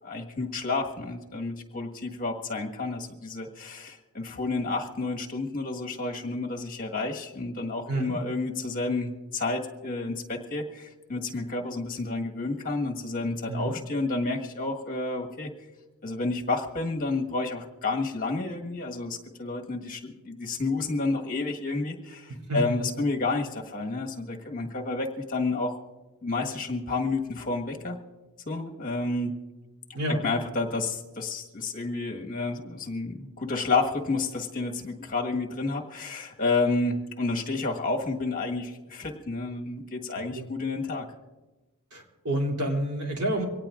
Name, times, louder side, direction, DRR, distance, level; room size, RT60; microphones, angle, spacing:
voice 1, 0.0-15.5 16.0-25.8 26.2-28.0 28.4-29.3 30.1-41.1, left 3 dB, 40° left, 2 dB, 1.6 m, -30 dB
voice 2, 22.5-22.8 29.9-30.2 40.3-40.5 41.9-43.4, right 1 dB, 90° right, 0 dB, 3.1 m, -29 dB
24.5 x 18.0 x 2.5 m, 1.1 s
head